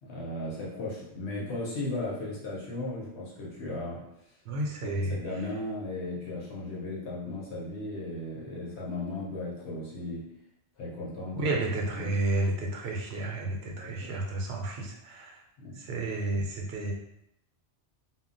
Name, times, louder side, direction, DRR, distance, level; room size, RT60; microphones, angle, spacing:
voice 1, 0.0-4.0 4.8-10.2 10.8-11.5 11.9-12.1 13.7-14.1 15.6-15.8, left 2 dB, 70° left, -4 dB, 0.9 m, -36 dB
voice 2, 4.5-5.2 11.3-15.4 15.8-16.9, right 2 dB, 70° right, 0 dB, 0.8 m, -31 dB
2.2 x 2.1 x 3.7 m, 0.81 s
omnidirectional pair, 1.2 m